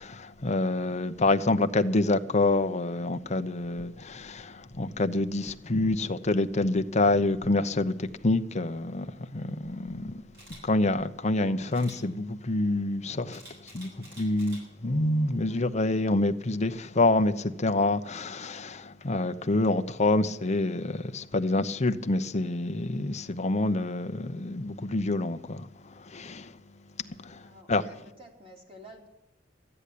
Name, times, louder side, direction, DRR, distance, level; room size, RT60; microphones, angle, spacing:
voice 1, 0.0-9.1 9.3-10.2 10.6-13.4 13.7-13.9 14.2-25.7 26.1-26.5 27.2-27.4 27.7-27.8, left 2 dB, 35° left, 0.8 m, -27 dB
Camera, 10.3-10.6 11.7-12.0 13.3-14.6 15.1-15.4, right 1 dB, 55° right, 7.6 m, -49 dB
voice 2, 27.4-29.1, right 1 dB, 30° right, 3.0 m, -50 dB
13.5 x 9.9 x 8.4 m
head